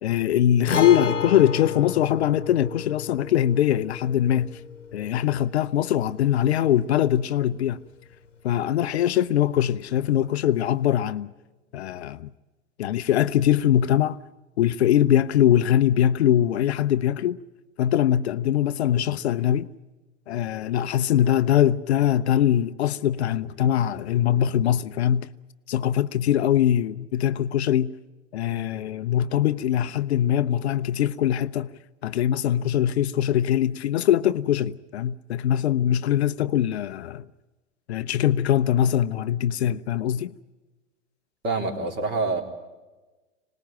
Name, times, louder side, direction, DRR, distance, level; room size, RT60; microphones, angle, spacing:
voice 1, 0.0-4.6 4.9-7.8 8.4-11.3 11.7-12.3 12.8-14.2 14.6-17.4 17.8-19.7 20.3-25.3 25.7-27.9 28.3-31.7 32.0-37.3 37.9-40.3, left 11 dB, 60° left, 0.8 m, -22 dB
Guitar, 0.7-8.3 8.6-8.7 10.7-10.8, left 6 dB, 85° left, 1.3 m, -33 dB
voice 2, 41.4-42.4, right 3 dB, 30° right, 3.8 m, -26 dB
26.0 x 19.5 x 9.1 m
figure-of-eight pair, 90°, 36 cm